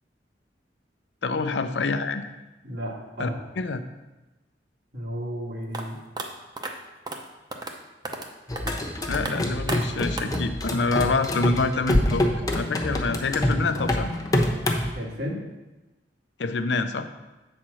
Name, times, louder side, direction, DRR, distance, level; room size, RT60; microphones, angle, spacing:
voice 1, 1.2-2.3 3.2-3.3 3.6-3.8 9.1-12.2 12.5-14.1 16.4-17.1, left 3 dB, 70° left, 9 dB, 0.6 m, -26 dB
voice 2, 2.6-3.4 4.9-6.0 14.9-15.4, equal, 65° right, -2 dB, 2.0 m, -33 dB
sound 1, 5.7-5.8 6.2-6.3 6.6-6.7 7.1-7.2 7.5-7.7 8.0-8.3 8.6-8.7 9.1-9.3 9.7-9.8 10.2-10.4, right 2 dB, 25° right, 0.7 m, -32 dB
sound 2, 8.5-14.9, left 1 dB, 20° left, 0.9 m, -26 dB
8.6 x 4.3 x 6.3 m, 1.1 s
head